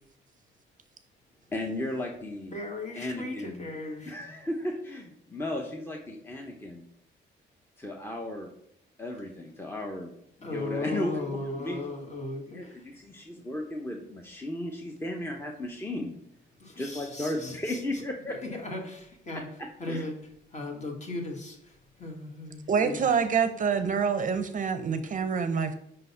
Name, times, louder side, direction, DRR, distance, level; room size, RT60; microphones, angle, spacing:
voice 1, 1.5-2.6 3.0-3.7 4.1-6.9 7.8-8.5 9.0-10.1 10.4-11.9 12.5-16.2 16.8-18.4 19.3-20.1, left 1 dB, 10° left, 1 dB, 0.8 m, -35 dB
voice 2, 2.5-4.1 10.4-12.8 16.6-17.8 18.3-19.4 19.8-20.1 20.5-21.7 22.0-23.0, left 2 dB, 35° left, 2 dB, 1.7 m, -37 dB
voice 3, 22.7-25.7, right 6 dB, 40° right, 10 dB, 0.6 m, -26 dB
5.5 x 3.9 x 5.6 m, 0.75 s
cardioid pair, 90°, 20 cm